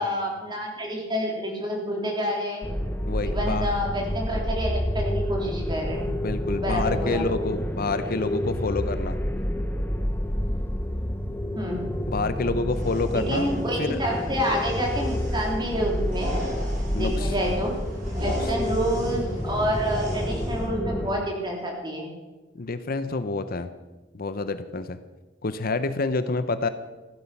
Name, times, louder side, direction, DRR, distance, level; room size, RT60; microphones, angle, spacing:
voice 1, 0.0-2.7 3.2-6.2 6.5-7.2 11.6-11.9 13.1-16.3 17.0-17.8 18.1-22.1, equal, 25° right, -1 dB, 3.7 m, -28 dB
sound 1, 2.6-21.1, equal, 10° left, 0.9 m, -29 dB
voice 2, 3.0-3.8 6.2-9.2 12.1-13.5 13.8-14.0 16.9-17.3 18.2-18.5 22.6-23.7 24.1-25.0 25.4-26.7, left 3 dB, 50° left, 11 dB, 0.7 m, -28 dB
sound 2, 12.7-20.6, equal, 40° right, 5.0 m, -38 dB
15.5 x 12.0 x 5.9 m, 1.2 s
head